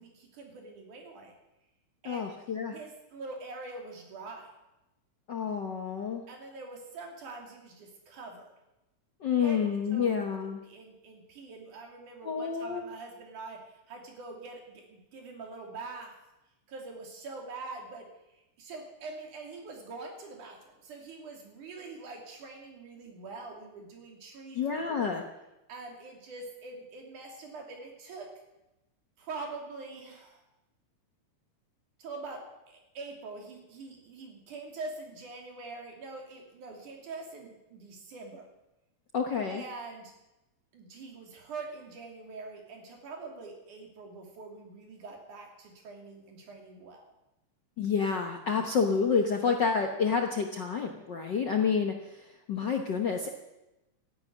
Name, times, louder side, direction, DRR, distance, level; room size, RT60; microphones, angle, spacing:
voice 1, 0.0-1.3 2.0-2.3 2.7-4.5 6.3-8.5 9.4-9.6 9.9-10.2 10.4-16.1 16.7-18.1 18.3-25.1 25.7-28.3 29.2-30.4 32.0-38.5 39.5-40.1 40.7-47.1, right 3 dB, 80° right, 2 dB, 4.3 m, -44 dB
voice 2, 2.0-2.8 5.3-6.2 9.2-10.6 12.2-12.8 24.5-25.2 39.1-39.6 47.8-53.3, left 6 dB, 60° left, 3 dB, 1.2 m, -29 dB
13.5 x 11.5 x 9.3 m, 0.96 s
omnidirectional pair, 3.5 m